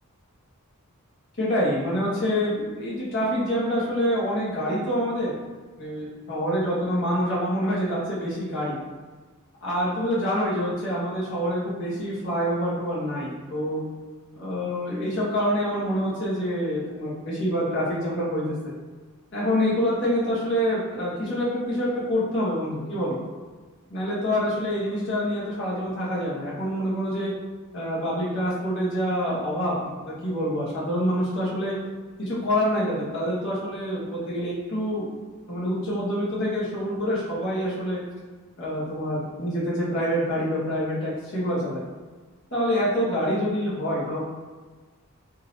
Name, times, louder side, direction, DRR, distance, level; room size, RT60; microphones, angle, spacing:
voice 1, 1.4-5.3 5.8-8.8 9.6-13.8 14.4-18.6 19.3-23.2 23.9-27.3 27.7-29.7 30.0-31.7 32.2-35.2 35.5-38.0 38.6-41.8 42.5-44.2, equal, 60° left, -8 dB, 1.4 m, -26 dB
3.7 x 2.8 x 2.9 m, 1.4 s
head